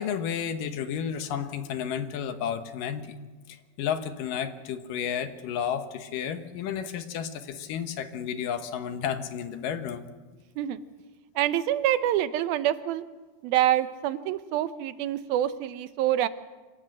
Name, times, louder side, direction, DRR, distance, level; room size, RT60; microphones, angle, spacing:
voice 1, 0.0-3.2 3.8-10.1, left 8 dB, 70° left, 9 dB, 2.7 m, -32 dB
voice 2, 11.4-13.0 13.4-16.3, right 12 dB, 90° right, 13 dB, 2.7 m, -26 dB
25.5 x 17.0 x 7.7 m, 1.3 s
omnidirectional pair, 4.1 m